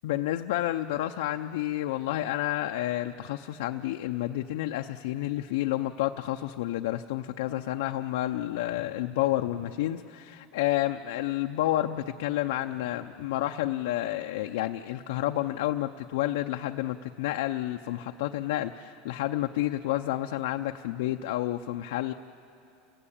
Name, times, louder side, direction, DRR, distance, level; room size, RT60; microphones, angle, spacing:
voice 1, 0.0-22.1, left 14 dB, 85° left, 5 dB, 0.6 m, -30 dB
30.0 x 17.0 x 8.8 m, 2.7 s
supercardioid pair, 140°, 0 cm